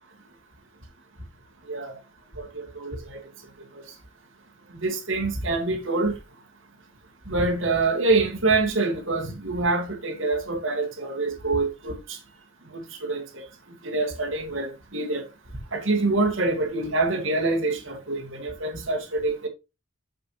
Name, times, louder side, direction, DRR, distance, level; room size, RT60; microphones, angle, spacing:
voice 1, 2.4-3.2 3.8-3.9 4.8-6.1 7.3-12.2 13.0-13.4 13.8-15.3 15.7-19.5, right 3 dB, 65° right, 2.1 m, -26 dB
6.7 x 6.5 x 3.1 m
head